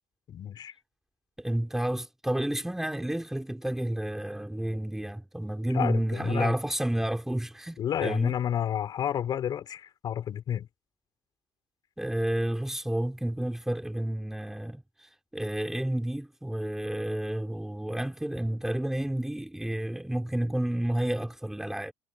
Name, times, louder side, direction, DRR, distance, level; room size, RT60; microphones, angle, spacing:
voice 1, 0.3-0.7 5.7-6.5 7.8-10.7, left 10 dB, 40° left, 5.8 m, -30 dB
voice 2, 1.4-8.4 12.0-21.9, right 1 dB, 5° right, 4.0 m, -30 dB
cardioid pair, 165°, 11 cm